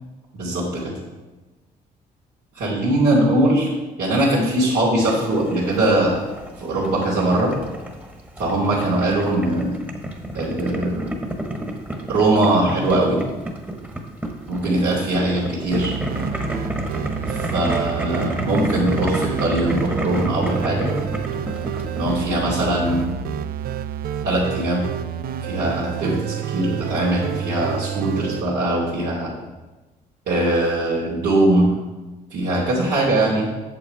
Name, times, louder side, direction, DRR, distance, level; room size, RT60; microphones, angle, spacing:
voice 1, 0.3-0.9 2.5-3.7 4.0-6.2 6.6-7.5 8.4-9.7 10.3-11.0 12.1-13.2 14.5-15.9 17.5-20.9 21.9-23.0 24.2-24.8 25.4-29.3 30.3-31.7 32.3-33.5, right 1 dB, 80° right, -8 dB, 2.5 m, -21 dB
Boiling, 5.0-23.1, right 1 dB, 10° right, 1.3 m, -31 dB
sound 1, 15.7-28.4, right 8 dB, 65° right, 0.4 m, -29 dB
8.5 x 7.0 x 4.7 m, 1.2 s
cardioid pair, 90°, 17 cm